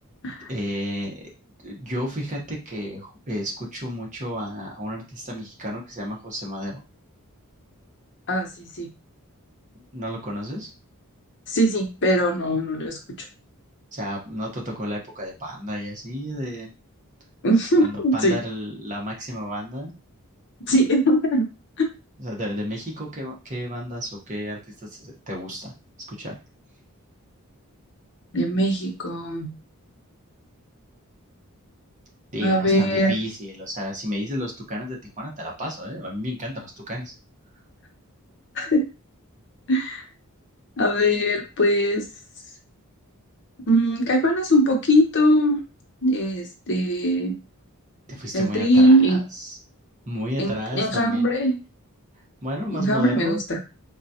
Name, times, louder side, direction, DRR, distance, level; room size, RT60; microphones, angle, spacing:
voice 1, 0.5-1.2 1.6-6.8 9.9-10.7 13.9-16.7 17.7-19.9 22.2-25.7 26.1-26.4 32.3-37.1 48.1-49.6 50.1-51.3 52.4-53.4, equal, 35° right, -1 dB, 1.0 m, -32 dB
voice 2, 8.3-8.9 11.5-13.0 17.4-18.4 20.7-21.5 21.8-21.9 28.3-29.5 32.4-33.1 38.5-38.8 39.7-40.0 40.8-42.0 43.7-45.6 46.0-47.3 48.3-49.2 50.4-51.6 52.7-53.6, equal, 55° left, 3 dB, 0.8 m, -21 dB
3.9 x 2.3 x 2.8 m, 0.29 s
head